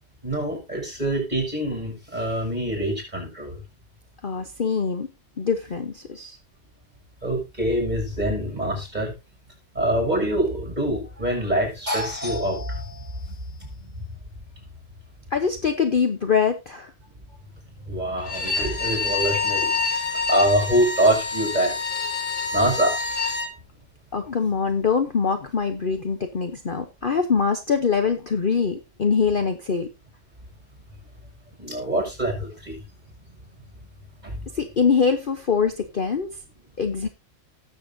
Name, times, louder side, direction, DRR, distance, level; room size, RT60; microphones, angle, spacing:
voice 1, 0.2-3.6 7.2-9.1 9.7-13.1 13.6-13.7 17.8-21.7 22.5-23.0 31.6-32.8 34.2-34.4, right 1 dB, 30° right, 1 dB, 5.8 m, -25 dB
voice 2, 4.2-5.1 5.4-6.4 15.3-16.9 24.1-29.9 34.5-36.4 36.8-37.1, left 6 dB, 45° left, 7 dB, 1.0 m, -23 dB
Bowed string instrument, 18.2-23.5, left 4 dB, 65° left, 2.4 m, -27 dB
19.0 x 7.0 x 2.7 m, 0.24 s
omnidirectional pair, 1.4 m